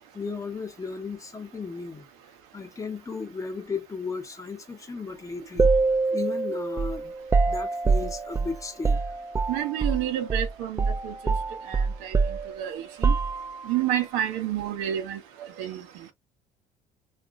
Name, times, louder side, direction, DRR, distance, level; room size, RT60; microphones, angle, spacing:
voice 1, 0.1-2.0 2.5-5.7 6.1-7.1 7.5-9.0, left 4 dB, 20° left, 0.8 m, -35 dB
sound 1, 5.6-10.0 10.3-10.5 10.8-13.8, right 4 dB, 20° right, 0.4 m, -25 dB
voice 2, 9.5-11.3 11.7-12.2 12.6-13.1 13.6-15.8, right 11 dB, 80° right, 0.7 m, -29 dB
2.9 x 2.4 x 2.3 m
supercardioid pair, 75°, 15 cm